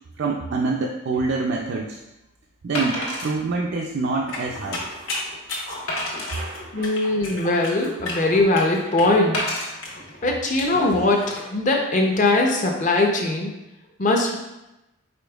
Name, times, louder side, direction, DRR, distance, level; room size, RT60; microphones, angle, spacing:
voice 1, 0.2-2.0 2.6-4.8 6.3-7.0, right 3 dB, 50° right, -1 dB, 0.4 m, -26 dB
Wood, 1.1-1.3 2.7-3.3 4.0-4.1 4.6-4.7 5.9-6.4 7.1-7.9 9.3-9.7 10.4-10.6, left 1 dB, 80° left, 1.4 m, -29 dB
sound 1, 4.3-11.5, left 2 dB, 60° left, 1.1 m, -34 dB
voice 2, 6.7-9.5 10.2-13.5 14.0-14.4, left 2 dB, 35° left, 1 dB, 0.6 m, -21 dB
5.0 x 4.3 x 2.3 m, 0.95 s
head